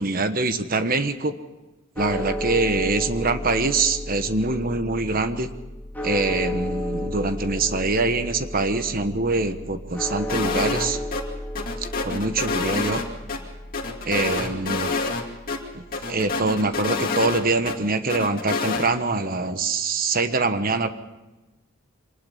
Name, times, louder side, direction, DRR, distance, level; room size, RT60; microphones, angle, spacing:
voice 1, 0.0-1.3 2.0-5.5 6.0-11.0 11.8-13.0 14.0-15.0 15.7-20.9, right 3 dB, 45° right, 10 dB, 1.2 m, -24 dB
sound 1, 2.0-16.2, left 1 dB, 10° left, 2.7 m, -33 dB
sound 2, 10.3-10.9 11.1-11.2 11.6-13.4 13.7-15.2 15.5-15.6 15.9-17.8 18.1-18.9, left 3 dB, 45° left, 2.4 m, -27 dB
24.5 x 19.5 x 5.6 m, 1.1 s
head